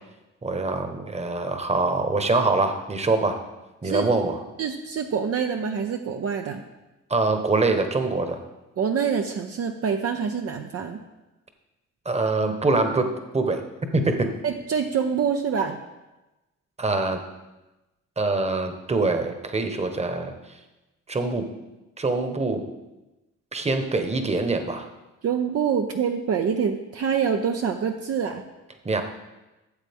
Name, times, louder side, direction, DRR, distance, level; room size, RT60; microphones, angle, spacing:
voice 1, 0.4-3.4 3.8-4.4 7.1-8.4 12.0-13.1 13.3-13.6 13.9-14.3 16.8-17.2 18.2-20.3 21.1-21.4 22.0-22.6 23.5-24.8 28.8-29.0, right 3 dB, 20° right, 6 dB, 1.2 m, -24 dB
voice 2, 4.6-6.6 8.8-11.0 14.4-15.8 25.2-28.4, right 7 dB, 55° right, 4 dB, 0.7 m, -26 dB
13.0 x 7.3 x 3.6 m, 1.0 s
cardioid pair, 90°, 30 cm